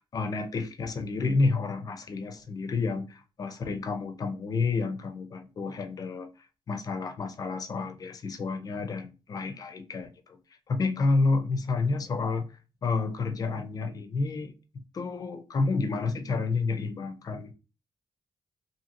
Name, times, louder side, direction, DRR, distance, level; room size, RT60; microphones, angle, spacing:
voice 1, 0.1-6.3 6.7-10.4 10.7-12.5 12.8-17.5, left 3 dB, 40° left, 0.4 m, -30 dB
2.8 x 2.6 x 2.5 m
wide cardioid pair, 160°, 10 cm